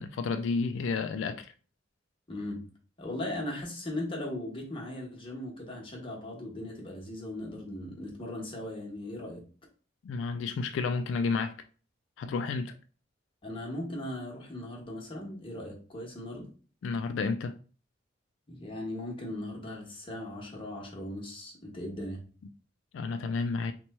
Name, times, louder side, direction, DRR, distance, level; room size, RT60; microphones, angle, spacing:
voice 1, 0.0-1.5 10.0-11.5 12.2-12.7 16.8-17.5 22.9-23.7, left 4 dB, 85° left, 0.3 m, -31 dB
voice 2, 2.3-2.6 3.0-9.4 13.4-16.5 18.5-22.2, left 1 dB, 30° left, 1.0 m, -38 dB
3.0 x 2.2 x 4.1 m
head